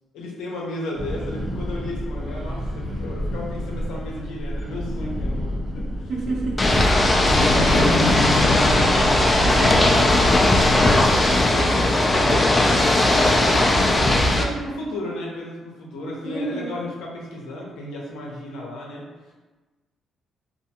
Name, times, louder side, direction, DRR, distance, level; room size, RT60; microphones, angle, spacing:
voice 1, 0.1-6.1 7.1-8.9 11.4-11.8 12.1-19.3, left 1 dB, 85° left, -2 dB, 0.6 m, -34 dB
sound 1, 0.9-7.8, equal, 5° right, 0.8 m, -30 dB
sound 2, 2.1-5.1 5.5-5.6 7.0-12.1, left 1 dB, 55° left, 0.8 m, -28 dB
voice 2, 6.1-6.7 9.5-10.2 16.2-16.8, right 3 dB, 65° right, -3 dB, 0.7 m, -29 dB
Ocean / Boat Water vehicle, 6.6-14.4, left 1 dB, 25° left, 0.4 m, -18 dB
2.4 x 2.3 x 2.8 m, 1.2 s
cardioid pair, 90°, 0 cm